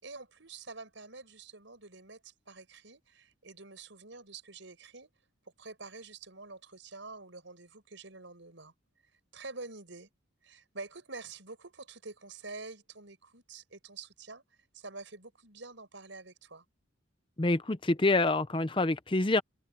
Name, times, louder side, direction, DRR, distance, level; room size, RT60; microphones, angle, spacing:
voice 1, 0.0-5.1 5.6-8.7 9.0-10.1 10.4-14.4 14.7-16.6, right 3 dB, 70° right, 5.4 m, -47 dB
voice 2, 17.4-19.4, left 2 dB, 25° left, 0.6 m, -26 dB
head